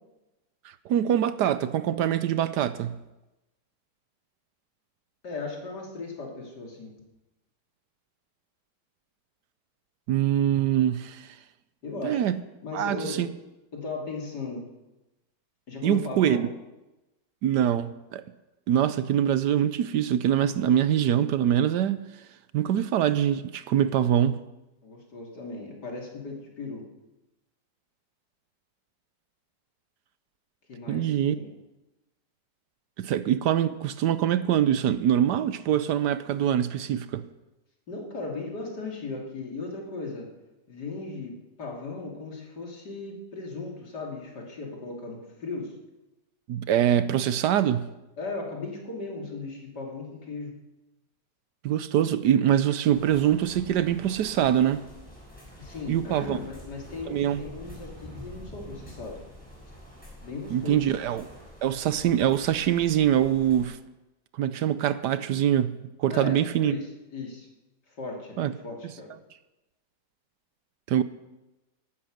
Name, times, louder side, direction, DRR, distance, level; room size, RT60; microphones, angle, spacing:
voice 1, 0.8-3.0 10.1-11.3 12.0-12.4 12.7-13.3 15.8-16.5 17.4-18.2 18.7-22.0 22.5-24.4 30.9-31.4 33.0-37.3 46.5-47.9 51.6-54.8 55.9-56.4 57.1-57.4 60.5-61.3 61.6-63.8 64.4-66.8 68.4-68.5 70.9-71.0, right 10 dB, 70° right, 1.2 m, -24 dB
voice 2, 5.2-6.9 11.8-12.2 12.6-13.3 13.7-14.7 15.7-16.5 24.8-26.9 30.7-31.5 37.9-40.3 40.7-45.7 48.2-50.6 55.6-59.2 60.2-60.9 66.1-66.9 67.1-67.5 68.0-69.1, left 3 dB, 65° left, 3.4 m, -37 dB
sound 1, 52.9-63.7, left 1 dB, 5° left, 6.4 m, -46 dB
16.0 x 12.0 x 6.5 m
omnidirectional pair, 1.9 m